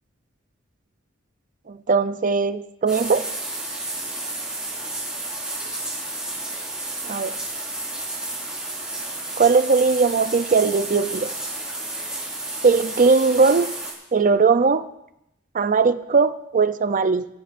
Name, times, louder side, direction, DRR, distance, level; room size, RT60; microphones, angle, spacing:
voice 1, 1.7-3.3 7.0-7.4 9.4-11.3 12.6-13.7 14.1-14.9 15.5-17.3, right 4 dB, 40° right, 0.5 m, -19 dB
sound 1, 2.9-13.9, right 2 dB, 5° right, 4.7 m, -31 dB
22.5 x 15.0 x 2.6 m
head